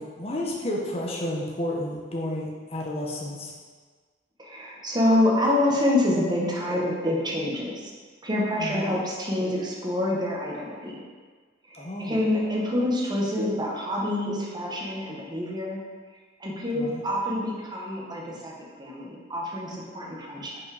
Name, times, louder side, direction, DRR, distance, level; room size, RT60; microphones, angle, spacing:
voice 1, 0.0-3.5 8.6-9.0 11.7-12.2 16.7-17.0, left 1 dB, 35° left, -3 dB, 0.9 m, -31 dB
voice 2, 4.4-7.9 8.2-11.0 11.7-15.8 16.4-18.5 18.8-20.6, left 1 dB, 25° right, -3 dB, 1.2 m, -26 dB
5.4 x 4.7 x 4.8 m, 1.5 s
head